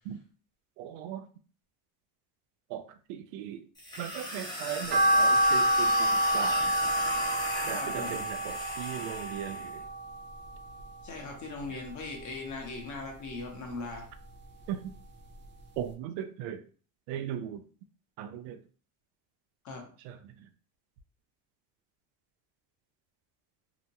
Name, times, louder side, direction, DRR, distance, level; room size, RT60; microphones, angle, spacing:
voice 1, 0.8-1.3 2.7-3.6 4.0-6.8 7.7-9.9 14.7-15.0 15.8-16.6 17.1-17.7 18.2-18.6 20.0-20.5, right 10 dB, 85° right, 0.5 m, -38 dB
sound 1, 3.8-9.7, equal, 10° left, 0.7 m, -37 dB
sound 2, 4.9-11.2 11.6-12.7 13.1-14.5 14.9-15.0 15.4-15.5 15.8-15.9, equal, 25° right, 0.4 m, -28 dB
voice 2, 7.7-8.3 11.0-14.1 19.6-19.9, left 3 dB, 40° left, 1.0 m, -39 dB
2.8 x 2.2 x 2.7 m
cardioid pair, 120°, 45 cm